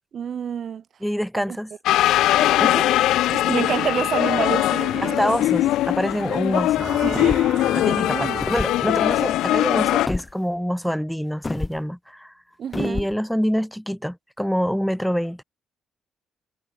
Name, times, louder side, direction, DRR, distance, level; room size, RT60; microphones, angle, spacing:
voice 1, 0.1-0.8 3.3-5.4 7.0-7.4 8.1-8.4 12.6-13.1, right 8 dB, 55° right, 0.5 m, -27 dB
voice 2, 1.0-1.7 2.6-2.9 5.0-6.9 7.7-12.3 12.8-15.4, equal, ahead, 0.7 m, -26 dB
sound 1, 1.9-10.1, left 14 dB, 85° left, 0.4 m, -21 dB
sound 2, 6.8-9.2, right 4 dB, 30° right, 5.8 m, -36 dB
sound 3, 7.0-7.6 8.3-8.8 10.1-10.3 11.4-11.8 12.7-13.1, left 3 dB, 20° left, 2.1 m, -29 dB
cardioid pair, 90°, 0 cm